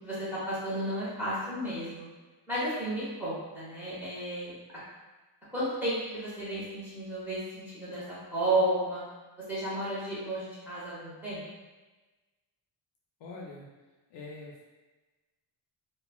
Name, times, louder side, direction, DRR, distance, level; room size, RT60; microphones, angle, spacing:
voice 1, 0.0-2.1 2.5-4.6 5.5-9.0 9.5-11.4, right 1 dB, 5° right, -11 dB, 0.8 m, -32 dB
voice 2, 13.2-13.7 14.1-14.6, left 3 dB, 60° left, -3 dB, 0.5 m, -44 dB
3.1 x 2.2 x 2.2 m, 1.2 s
wide cardioid pair, 175°, 48 cm